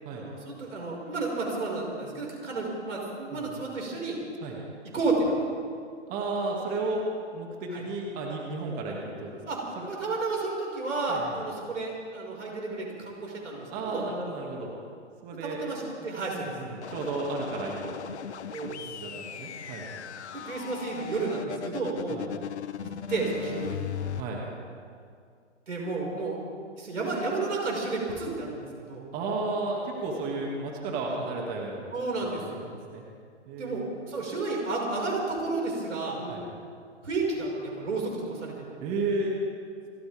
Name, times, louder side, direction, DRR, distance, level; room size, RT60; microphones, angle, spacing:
voice 1, 0.1-4.2 4.9-5.3 7.7-7.8 9.5-9.6 9.9-14.1 15.4-16.5 18.5-18.8 20.3-22.2 22.8-23.9 25.7-26.4 26.8-29.0 31.9-32.7 33.6-33.8 34.1-36.4 37.0-38.5, right 3 dB, 80° right, -2 dB, 5.7 m, -31 dB
voice 2, 6.1-7.1 7.3-9.4 9.8-9.9 11.1-11.4 13.7-14.7 15.2-15.6 16.4-18.2 18.9-19.9 22.1-22.3 24.2-24.4 29.1-31.9 32.3-33.0 33.5-33.9 36.3-36.5 38.8-39.4, right 3 dB, 25° right, -1 dB, 2.4 m, -33 dB
sound 1, 16.8-24.2, left 8 dB, 70° left, 1.0 m, -38 dB
29.0 x 13.5 x 3.6 m, 2.2 s
hypercardioid pair, 140°, 36 cm